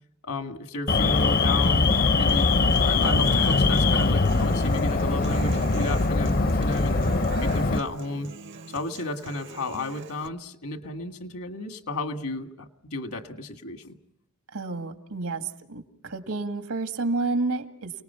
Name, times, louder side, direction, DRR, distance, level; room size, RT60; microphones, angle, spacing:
voice 1, 0.2-2.5 2.8-7.0 7.4-8.3 8.7-14.0, left 2 dB, 75° left, 6 dB, 1.9 m, -33 dB
Alarm, 0.9-7.8, left 3 dB, 45° left, 0.7 m, -22 dB
Human voice / Acoustic guitar, 2.3-10.3, right 4 dB, 55° right, 0.8 m, -41 dB
voice 2, 14.5-15.4 15.7-17.9, right 3 dB, 85° right, 6 dB, 2.0 m, -29 dB
29.5 x 19.5 x 5.7 m, 0.76 s
head